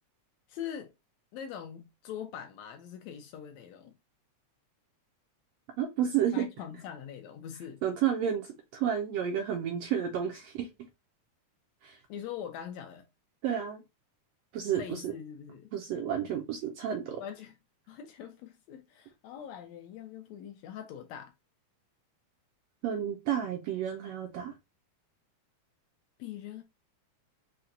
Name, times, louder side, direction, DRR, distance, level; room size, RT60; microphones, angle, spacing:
voice 1, 0.5-0.9 1.3-3.9 6.3-7.8 12.1-13.1 14.7-15.7 17.2-17.6 17.9-21.3 26.2-26.6, left 9 dB, 75° left, 1.7 m, -42 dB
voice 2, 5.8-6.5 7.8-10.7 11.8-12.0 13.4-13.8 14.5-15.1 15.7-17.2 22.8-24.5, right 9 dB, 75° right, 1.5 m, -31 dB
5.8 x 2.2 x 3.7 m
omnidirectional pair, 3.5 m